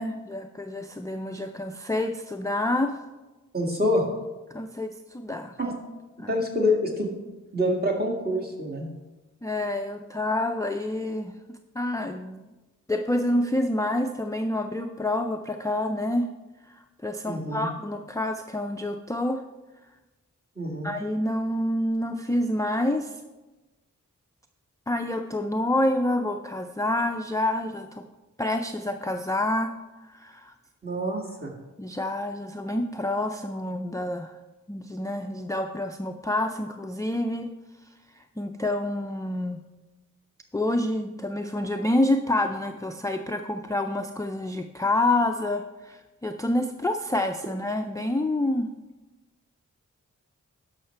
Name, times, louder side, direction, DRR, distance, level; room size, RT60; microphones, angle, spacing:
voice 1, 0.0-3.0 4.5-5.5 6.2-6.4 9.4-11.3 11.8-12.4 12.9-16.3 16.7-16.8 17.0-19.4 20.8-23.2 24.9-28.0 28.4-29.7 30.1-30.5 31.8-34.4 34.7-37.5 38.2-39.6 40.5-48.7, left 1 dB, 10° left, 5 dB, 0.4 m, -28 dB
voice 2, 3.5-4.0 5.6-5.7 6.3-7.1 7.5-8.9 17.3-17.7 20.6-20.9 30.8-31.5, left 1 dB, 30° right, -1 dB, 1.9 m, -26 dB
12.0 x 5.6 x 4.5 m, 1.1 s
wide cardioid pair, 95°, 32 cm